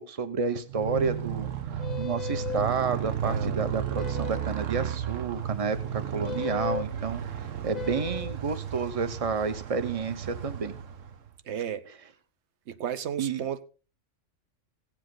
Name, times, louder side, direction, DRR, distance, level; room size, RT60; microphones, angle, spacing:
voice 1, 0.0-7.2 7.6-10.7 13.2-13.4, right 5 dB, 30° right, 0.9 m, -30 dB
Motorcycle, 0.7-11.3, right 9 dB, 80° right, 1.2 m, -34 dB
sound 1, 1.8-2.7 3.9-4.5 6.2-6.9 7.7-8.4, left 10 dB, 45° left, 0.6 m, -36 dB
voice 2, 3.2-3.6 11.4-11.8 12.7-13.6, right 9 dB, 65° right, 1.1 m, -33 dB
16.5 x 7.5 x 3.9 m
omnidirectional pair, 1.3 m